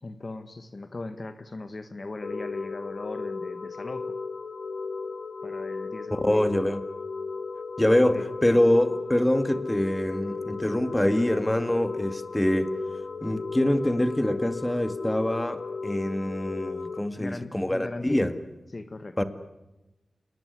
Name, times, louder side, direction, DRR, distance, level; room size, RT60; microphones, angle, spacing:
voice 1, 0.0-4.1 5.4-6.4 8.1-8.3 17.2-18.3 18.7-19.2, left 2 dB, 45° left, 10 dB, 1.5 m, -38 dB
sound 1, 2.2-17.0, left 4 dB, 65° left, 1.1 m, -35 dB
voice 2, 6.1-6.9 7.8-12.7 13.2-18.3 19.2-19.3, left 1 dB, 15° left, 10 dB, 2.2 m, -25 dB
29.0 x 19.5 x 9.8 m, 1.0 s
wide cardioid pair, 75°, 0 cm